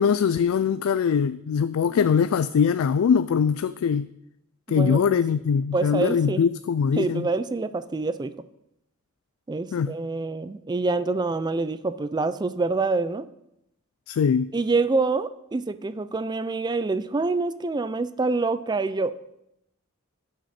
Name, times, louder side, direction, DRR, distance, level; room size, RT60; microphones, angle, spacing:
voice 1, 0.0-4.1 4.7-7.3 9.7-9.9 14.1-14.5, left 6 dB, 90° left, 0.3 m, -22 dB
voice 2, 4.7-5.2 5.7-6.4 7.0-8.3 9.5-13.3 14.5-19.1, right 3 dB, 20° right, 0.4 m, -26 dB
17.5 x 6.0 x 4.2 m
head